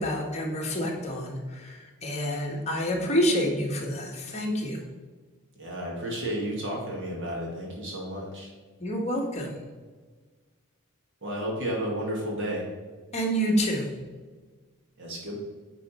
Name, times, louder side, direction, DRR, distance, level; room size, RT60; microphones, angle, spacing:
voice 1, 0.0-4.8 8.8-9.6 13.1-13.9, equal, 30° left, -1 dB, 1.4 m, -28 dB
voice 2, 5.6-8.5 11.2-12.7 15.0-15.4, equal, 55° right, -2 dB, 2.0 m, -32 dB
9.0 x 4.0 x 4.3 m, 1.4 s
head